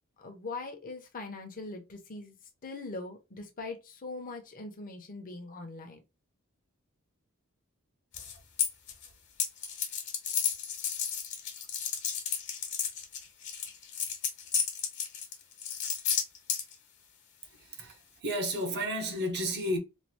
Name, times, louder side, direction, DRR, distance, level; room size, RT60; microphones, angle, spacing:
voice 1, 0.2-2.4 2.6-6.0, left 3 dB, 40° left, 0.8 m, -41 dB
sound 1, 8.1-9.1 9.4-16.7, left 7 dB, 55° left, 1.2 m, -32 dB
voice 2, 17.4-19.8, equal, 50° right, 0.9 m, -32 dB
3.1 x 2.5 x 2.8 m
head